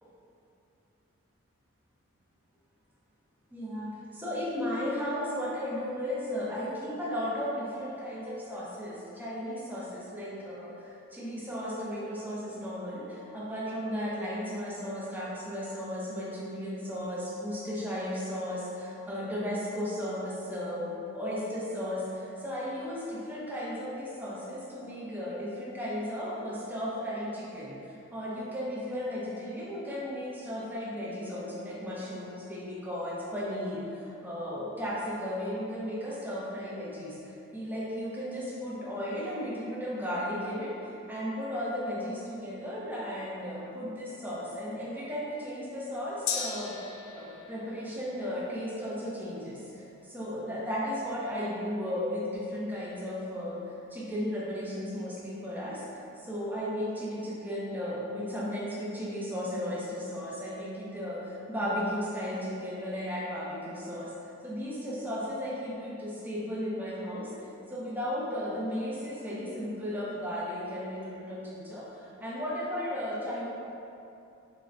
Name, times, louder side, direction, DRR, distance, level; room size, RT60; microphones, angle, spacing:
voice 1, 3.5-46.8 47.1-73.5, equal, 10° right, -7 dB, 0.7 m, -35 dB
Gong, 46.3-54.0 54.4-54.5, left 6 dB, 65° left, 0.4 m, -42 dB
3.8 x 3.7 x 3.3 m, 2.7 s
head